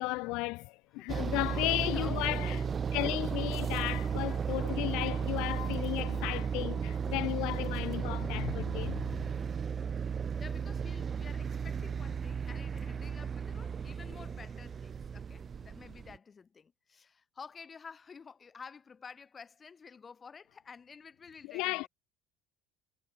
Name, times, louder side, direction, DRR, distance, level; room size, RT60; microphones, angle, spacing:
voice 1, 0.0-2.6 2.9-9.2 21.5-21.9, left 24 dB, 70° left, 1.1 m, -34 dB
voice 2, 1.0-2.6 3.3-3.4 10.4-21.9, left 5 dB, 25° left, 3.7 m, -51 dB
sound 1, 1.1-16.2, right 6 dB, 30° right, 1.6 m, -34 dB
supercardioid pair, 120°, 0 cm